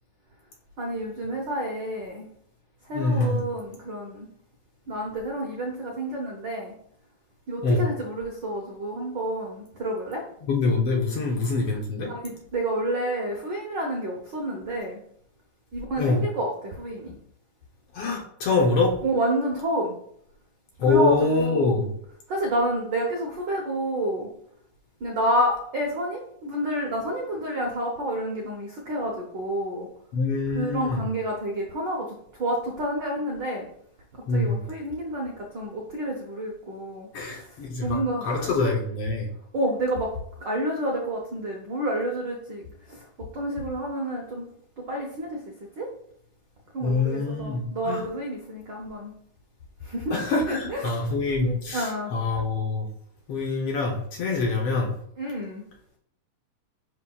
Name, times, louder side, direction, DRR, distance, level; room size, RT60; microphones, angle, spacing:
voice 1, 0.8-2.3 2.9-4.3 4.9-6.7 7.5-10.2 12.0-15.0 15.7-17.2 19.0-19.9 20.9-21.9 22.3-24.3 25.0-29.9 30.5-32.1 32.4-33.7 34.3-37.5 37.8-38.5 39.5-40.1 40.4-43.0 43.3-44.5 44.8-45.4 45.8-45.9 46.7-49.1 49.8-50.2 50.5-51.0 51.3-52.1 55.2-55.6, right 1 dB, 80° right, 0 dB, 1.0 m, -29 dB
voice 2, 2.9-3.4 7.6-7.8 10.5-12.1 16.0-16.2 17.9-18.9 20.8-21.9 30.1-31.0 34.3-34.6 37.1-39.3 46.8-48.0 50.1-52.9 53.3-54.9, left 3 dB, 65° left, -1 dB, 1.6 m, -25 dB
11.0 x 3.7 x 2.3 m, 0.67 s
omnidirectional pair, 3.4 m